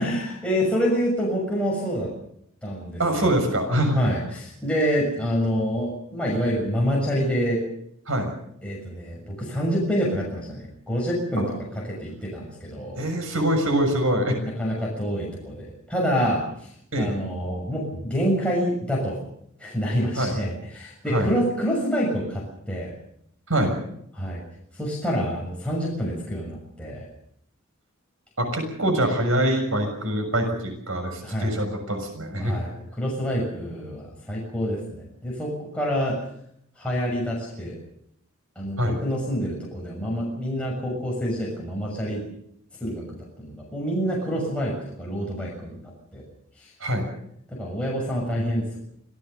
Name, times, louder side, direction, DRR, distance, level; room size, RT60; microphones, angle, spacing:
voice 1, 0.0-2.1 2.6-3.3 3.9-7.6 8.6-13.0 14.4-16.7 17.0-19.2 19.6-22.9 24.1-24.4 24.7-27.1 31.2-31.5 32.4-36.2 36.8-37.8 38.5-42.2 42.8-46.2 46.6-46.7 47.5-48.8, equal, 5° left, -4 dB, 6.6 m, -27 dB
voice 2, 3.0-4.0 8.1-8.3 11.4-11.5 13.0-14.4 16.9-17.1 20.2-20.3 21.1-21.3 23.5-23.8 28.4-32.5 38.8-39.0 46.8-47.0, right 1 dB, 80° right, 5 dB, 6.6 m, -24 dB
27.0 x 17.5 x 6.9 m, 0.72 s
head